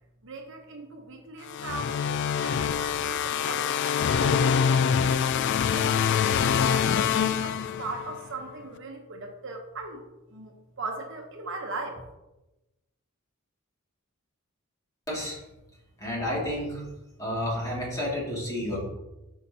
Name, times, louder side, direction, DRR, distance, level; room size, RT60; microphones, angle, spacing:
voice 1, 0.2-3.7 4.1-10.0 10.3-12.0, right 3 dB, 60° right, 2 dB, 1.0 m, -39 dB
sound 1, 1.5-8.2, left 7 dB, 55° left, 0.3 m, -25 dB
voice 2, 15.1-15.4 16.0-16.8 17.2-18.9, left 1 dB, 15° left, -5 dB, 2.4 m, -30 dB
9.1 x 5.7 x 2.9 m, 1.0 s
head